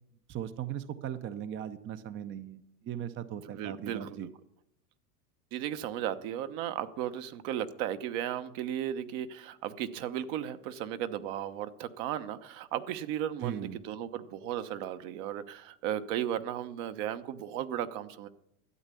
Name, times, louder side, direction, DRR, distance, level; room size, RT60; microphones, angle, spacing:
voice 1, 0.3-4.3 13.4-13.8, right 10 dB, 25° right, 11 dB, 0.6 m, -38 dB
voice 2, 3.5-4.3 5.5-18.3, right 10 dB, 55° right, 10 dB, 1.0 m, -35 dB
12.5 x 8.1 x 6.9 m, 0.79 s
hypercardioid pair, 105°, 46 cm